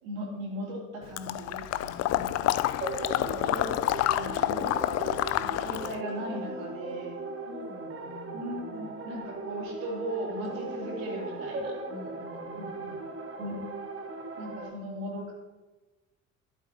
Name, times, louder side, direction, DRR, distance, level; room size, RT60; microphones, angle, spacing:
voice 1, 0.0-2.8 3.2-3.7 4.2-7.2 8.3-11.8 12.5-12.9 13.4-13.6 14.4-15.3, equal, 65° right, -2 dB, 3.1 m, -38 dB
Water / Liquid, 1.2-6.0, left 14 dB, 40° left, 0.5 m, -28 dB
sound 1, 2.8-14.7, right 3 dB, 35° right, 1.7 m, -38 dB
voice 2, 7.5-8.5 11.9-13.0, left 2 dB, 55° left, 1 dB, 2.3 m, -47 dB
12.0 x 12.0 x 2.9 m, 1.2 s
figure-of-eight pair, 55°, 39 cm